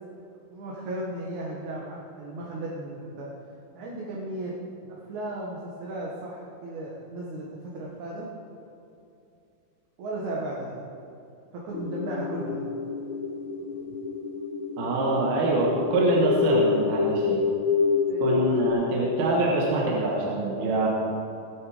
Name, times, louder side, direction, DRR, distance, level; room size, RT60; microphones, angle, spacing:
voice 1, 0.5-3.3 3.7-4.6 4.9-8.3 10.0-10.8 11.5-12.7 18.1-18.8, right 1 dB, 55° right, -4 dB, 2.7 m, -35 dB
sound 1, 11.7-18.7, left 5 dB, 80° left, 3.2 m, -27 dB
voice 2, 14.8-17.4 18.2-20.9, right 2 dB, 70° right, -3 dB, 3.6 m, -25 dB
20.0 x 8.4 x 5.1 m, 2.7 s
omnidirectional pair, 4.5 m